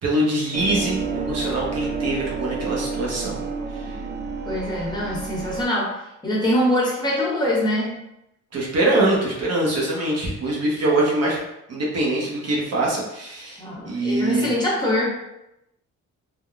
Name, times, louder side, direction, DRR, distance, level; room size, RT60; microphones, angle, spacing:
voice 1, 0.0-3.4 3.7-4.0 8.5-11.4 11.7-14.5, right 1 dB, 55° right, -4 dB, 0.9 m, -23 dB
sound 1, 0.5-5.6, right 4 dB, 35° right, 0.4 m, -30 dB
voice 2, 4.4-8.0 13.6-15.3, left 1 dB, 15° left, -6 dB, 0.8 m, -23 dB
3.5 x 2.1 x 2.4 m, 0.86 s
cardioid pair, 120°, 30 cm